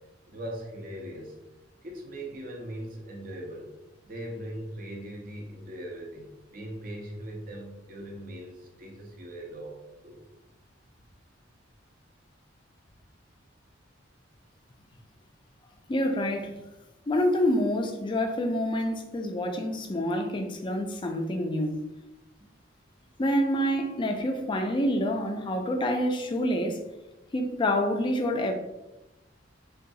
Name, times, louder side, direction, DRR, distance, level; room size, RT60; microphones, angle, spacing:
voice 1, 0.3-1.4 1.8-3.8 4.0-10.2 22.4-22.5, right 1 dB, 45° right, 0.6 m, -40 dB
voice 2, 15.9-16.6 17.1-21.8 23.2-26.8 27.3-28.5, left 1 dB, 25° left, 0.3 m, -27 dB
3.8 x 2.3 x 2.6 m
head